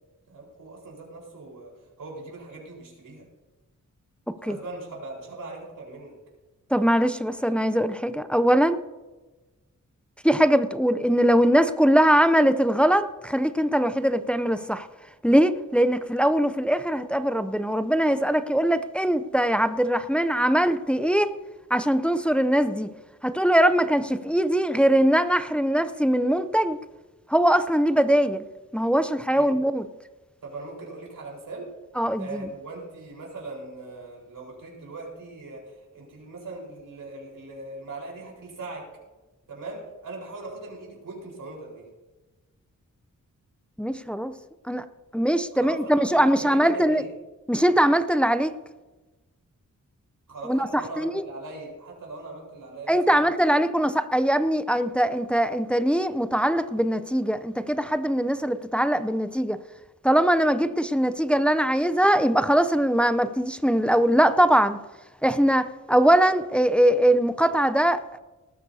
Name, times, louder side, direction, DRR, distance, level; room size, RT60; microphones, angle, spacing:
voice 1, 0.3-3.3 4.4-6.2 29.3-29.6 30.4-31.7 32.2-38.9 39.5-41.9 45.5-47.1 50.3-53.6, right 2 dB, 85° right, 4.4 m, -40 dB
voice 2, 6.7-8.8 10.2-14.9 15.2-21.3 21.7-22.9 23.2-26.8 27.3-28.5 28.7-29.9 32.0-32.5 43.8-44.3 44.6-44.8 45.1-47.0 47.5-48.5 50.5-51.2 52.9-59.6 60.0-64.8 65.2-68.2, equal, 5° left, 0.5 m, -21 dB
19.0 x 13.0 x 2.8 m
wide cardioid pair, 110°, 31 cm